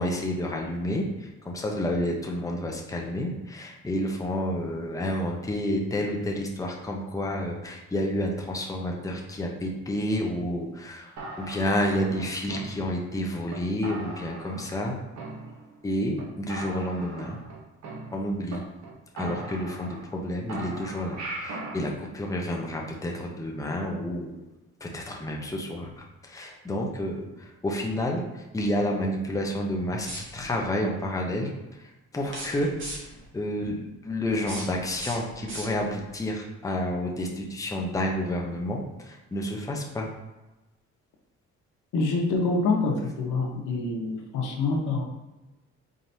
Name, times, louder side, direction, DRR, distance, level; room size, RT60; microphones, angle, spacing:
voice 1, 0.0-11.1 11.4-15.0 15.8-17.4 18.1-18.6 19.2-24.4 24.8-32.7 33.3-40.1, left 1 dB, 10° left, 0 dB, 0.7 m, -30 dB
sound 1, 11.2-13.1 13.5-13.6 13.8-14.9 15.2-15.9 16.2-16.3 16.5-18.6 18.8-18.9 19.2-20.2 20.5-21.8, right 2 dB, 65° right, 1.0 m, -39 dB
sound 2, 29.9-30.6 32.2-33.3 34.2-36.1, right 1 dB, 40° right, 1.5 m, -39 dB
voice 2, 41.9-45.1, left 3 dB, 80° left, 1 dB, 0.9 m, -26 dB
4.4 x 3.8 x 2.7 m, 1.1 s
cardioid pair, 90°, 30 cm